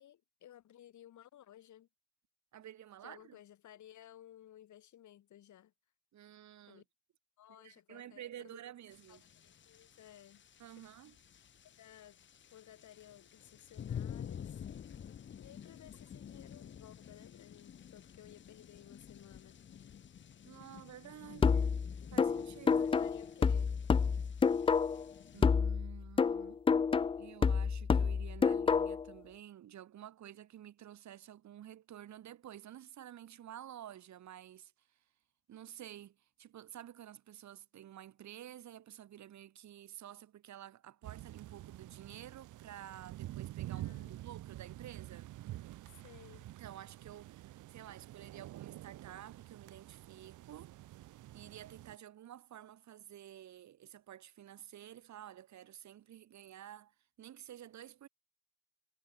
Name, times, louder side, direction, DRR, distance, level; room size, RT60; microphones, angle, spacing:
voice 1, 0.0-1.9 3.0-5.7 6.7-6.8 7.4-8.6 9.1-10.4 10.8-10.9 11.6-12.2 12.5-14.6 15.4-19.6 22.7-23.8 43.7-44.2 46.0-46.5, left 11 dB, 70° left, 4.6 m, -57 dB
voice 2, 2.5-3.4 6.1-6.8 7.5-9.2 10.6-11.1 20.4-21.8 22.1-22.9 25.3-26.6 27.2-35.0 35.5-45.3 46.5-50.7 51.3-58.1, right 11 dB, 70° right, 2.8 m, -51 dB
sound 1, 8.9-25.5, left 8 dB, 40° left, 0.8 m, -50 dB
sound 2, 21.4-25.1 25.4-29.1, left 5 dB, 20° left, 0.3 m, -29 dB
sound 3, 41.0-52.0, right 15 dB, 85° right, 2.2 m, -48 dB
cardioid pair, 90°, 30 cm